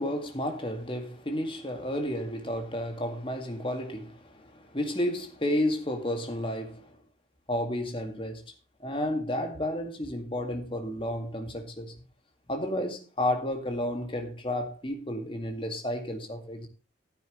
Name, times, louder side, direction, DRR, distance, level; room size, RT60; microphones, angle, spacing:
voice 1, 0.0-7.0 7.5-8.4 8.8-11.9 12.5-16.7, left 1 dB, 25° left, 2.1 m, -32 dB
14.0 x 9.0 x 3.1 m
head